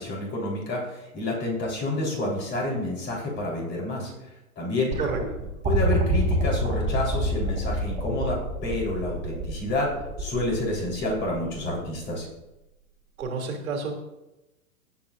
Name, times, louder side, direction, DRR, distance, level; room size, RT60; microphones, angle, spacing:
voice 1, 0.0-4.1 4.6-4.9 5.6-9.9 10.2-12.3, left 2 dB, 25° left, -2 dB, 4.0 m, -29 dB
sound 1, 4.9-12.1 13.2-13.3, right 2 dB, 15° right, 3.1 m, -28 dB
voice 2, 13.2-13.9, right 4 dB, 70° right, 2 dB, 3.0 m, -29 dB
17.0 x 8.2 x 2.6 m, 0.95 s
hypercardioid pair, 125°, 43 cm